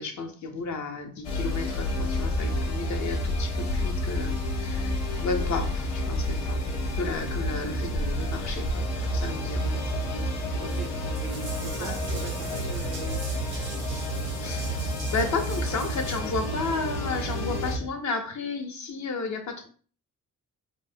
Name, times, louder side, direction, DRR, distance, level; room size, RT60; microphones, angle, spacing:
voice 1, 0.0-6.6 7.0-8.8 9.1-9.7 11.8-12.0 14.4-19.7, left 4 dB, 45° left, 0.7 m, -33 dB
sound 1, 1.2-17.8, left 2 dB, 90° left, 0.6 m, -31 dB
sound 2, 1.9-17.9, right 3 dB, 10° right, 0.5 m, -35 dB
Water tap faucet / Bathtub (filling or washing) / Drip, 7.0-16.2, right 1 dB, 90° right, 1.3 m, -40 dB
voice 2, 10.6-13.5, right 7 dB, 70° right, 0.6 m, -41 dB
2.9 x 2.0 x 2.6 m
hypercardioid pair, 50°, 40 cm